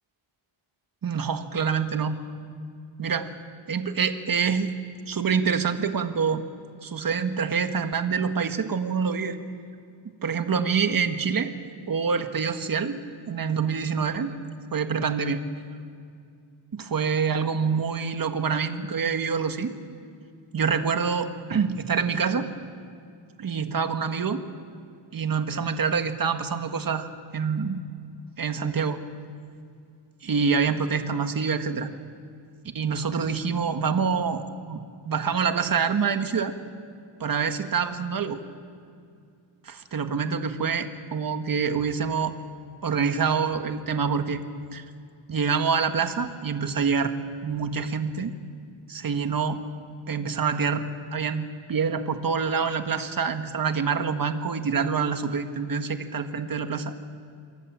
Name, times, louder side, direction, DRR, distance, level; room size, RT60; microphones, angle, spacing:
voice 1, 1.0-2.2 3.0-3.3 3.7-4.7 5.1-6.4 6.8-9.4 10.2-11.5 11.9-13.0 13.3-14.3 14.7-15.4 16.7-19.7 20.5-22.5 23.4-24.4 25.1-27.1 27.3-27.8 28.4-29.0 30.2-31.9 32.7-36.5 37.2-38.4 39.6-42.4 42.8-44.4 44.7-44.8 45.3-47.1 47.4-48.3 48.9-49.6 50.1-50.8 51.1-56.9, right 6 dB, 45° right, 8 dB, 1.6 m, -26 dB
28.0 x 23.0 x 7.4 m, 2.4 s
wide cardioid pair, 125°, 49 cm